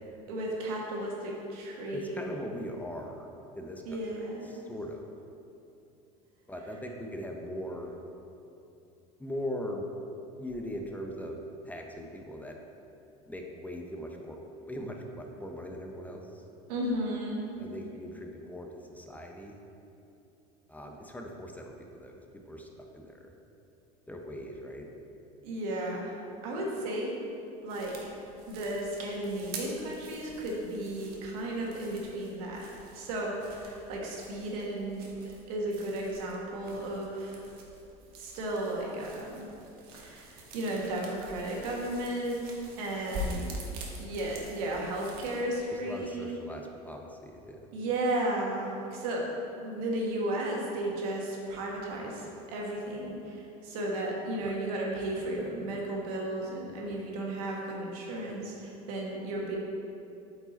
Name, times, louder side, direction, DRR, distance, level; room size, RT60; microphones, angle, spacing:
voice 1, 0.3-2.2 3.9-4.5 16.7-17.5 25.4-26.1 26.4-27.1 27.6-28.1 28.5-32.7 32.9-37.4 38.2-39.5 39.9-42.5 42.8-43.5 44.0-46.4 47.7-49.3 49.6-59.6, right 1 dB, 80° right, -2 dB, 1.6 m, -34 dB
voice 2, 1.9-3.3 3.5-5.1 6.5-8.0 9.2-9.9 10.4-12.6 13.3-14.4 14.7-16.4 17.6-19.6 20.7-23.4 24.1-24.9 45.7-47.6 54.4-54.6, equal, 10° left, 2 dB, 0.7 m, -40 dB
sound 1, 27.7-45.4, right 1 dB, 55° right, 1.4 m, -45 dB
8.4 x 4.9 x 4.0 m, 2.8 s
supercardioid pair, 100°, 19 cm